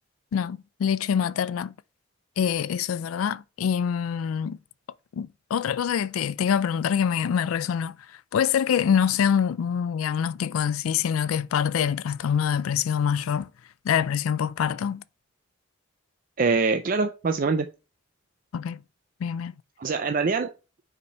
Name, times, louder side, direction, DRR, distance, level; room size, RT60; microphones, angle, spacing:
voice 1, 0.3-1.7 2.4-4.6 5.1-8.0 8.3-13.5 13.8-15.0 18.5-18.8 19.2-19.5, left 8 dB, 85° left, 0.3 m, -25 dB
voice 2, 16.4-17.7 19.8-20.5, right 4 dB, 40° right, 0.4 m, -24 dB
6.9 x 5.0 x 4.1 m
head